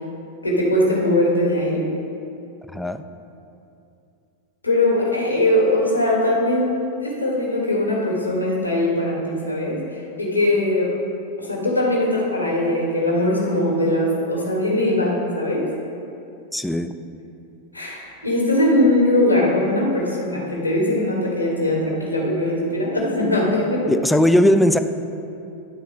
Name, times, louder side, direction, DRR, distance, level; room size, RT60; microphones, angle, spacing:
voice 1, 0.4-1.9 4.6-10.9 11.4-15.7 17.7-23.9, left 1 dB, 85° left, -3 dB, 1.5 m, -21 dB
voice 2, 2.7-3.0 16.5-16.9 23.9-24.8, equal, 5° left, 8 dB, 0.3 m, -18 dB
10.0 x 4.1 x 5.4 m, 2.6 s
figure-of-eight pair, 90°, 0 cm